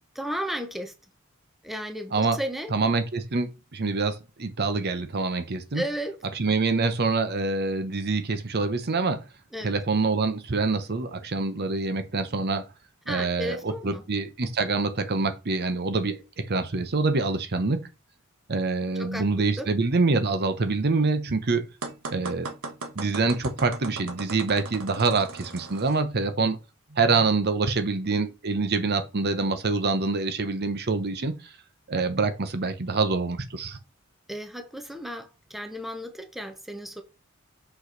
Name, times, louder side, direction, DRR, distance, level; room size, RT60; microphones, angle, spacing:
voice 1, 0.1-0.9 1.6-2.7 5.7-6.2 9.5-9.7 13.1-14.0 19.0-19.2 19.6-19.7 34.3-37.0, equal, ahead, 0.9 m, -34 dB
voice 2, 2.7-5.8 6.4-9.2 9.6-12.6 13.1-17.8 18.5-21.7 22.1-22.5 23.0-26.6 26.9-31.3 31.9-33.8, right 3 dB, 50° right, 0.8 m, -26 dB
sound 1, 21.8-26.0, right 3 dB, 80° right, 1.2 m, -38 dB
6.3 x 5.4 x 3.9 m
head